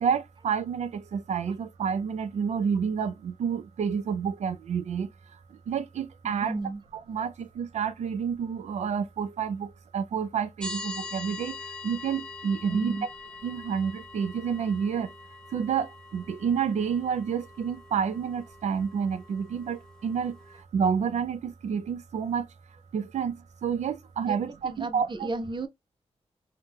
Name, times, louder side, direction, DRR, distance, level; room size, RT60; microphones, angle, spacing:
voice 1, 0.0-5.1 5.7-6.5 7.1-9.7 9.9-11.5 11.8-13.0 13.4-15.1 15.5-20.3 20.7-22.4 22.9-23.4 23.6-25.3, right 7 dB, 90° right, 0.4 m, -29 dB
voice 2, 6.2-6.8 7.2-7.3 12.7-13.1 24.3-24.4 24.6-25.7, right 2 dB, 45° right, 0.7 m, -33 dB
sound 1, 10.6-20.6, left 3 dB, 5° left, 0.4 m, -44 dB
2.8 x 2.1 x 3.4 m
wide cardioid pair, 85°, 11 cm